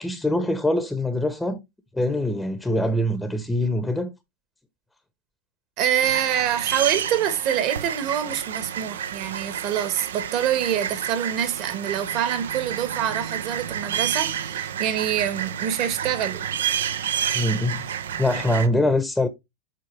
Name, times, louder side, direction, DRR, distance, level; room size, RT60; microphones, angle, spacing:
voice 1, 0.0-1.6 1.9-4.1 17.3-17.9 18.2-19.3, left 1 dB, 5° left, 0.8 m, -23 dB
voice 2, 5.8-16.5, right 10 dB, 50° right, 1.5 m, -26 dB
sound 1, 6.0-18.7, right 9 dB, 80° right, 0.6 m, -30 dB
7.6 x 4.5 x 3.2 m
hypercardioid pair, 105°, 0 cm